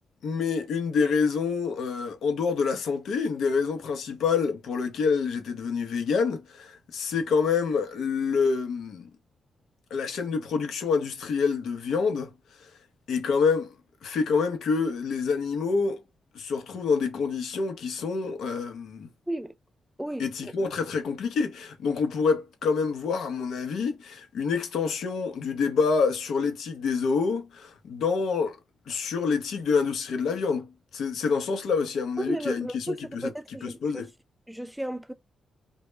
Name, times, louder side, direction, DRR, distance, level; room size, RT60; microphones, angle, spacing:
voice 1, 0.2-9.1 9.9-12.3 12.6-12.7 13.1-13.7 14.0-16.0 16.3-19.1 20.2-28.6 28.9-34.1, left 5 dB, 85° left, 0.6 m, -27 dB
voice 2, 32.2-34.1 34.5-35.1, right 1 dB, 5° right, 0.4 m, -33 dB
2.2 x 2.0 x 3.1 m
cardioid pair, 80°, 0 cm